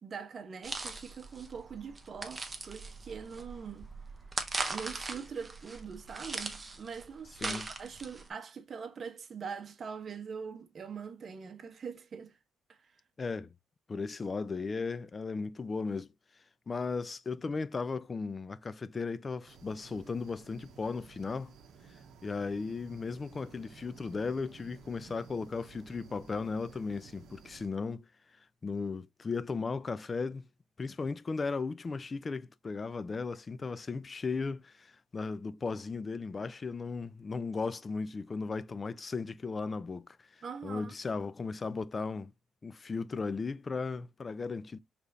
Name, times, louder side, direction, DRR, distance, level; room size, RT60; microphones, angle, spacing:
voice 1, 0.0-3.9 4.7-12.3 12.7-12.9 40.4-40.9, right 6 dB, 45° right, 1.0 m, -43 dB
sound 1, 0.6-8.3, right 3 dB, 25° right, 0.9 m, -40 dB
voice 2, 13.2-13.5 13.9-16.1 16.7-21.5 22.2-28.0 28.6-30.5 30.8-40.2 40.6-42.3 42.6-44.8, left 4 dB, 35° left, 0.4 m, -36 dB
sound 2, 19.5-27.7, right 5 dB, 75° right, 0.8 m, -55 dB
4.8 x 3.4 x 2.5 m
cardioid pair, 90°, 0 cm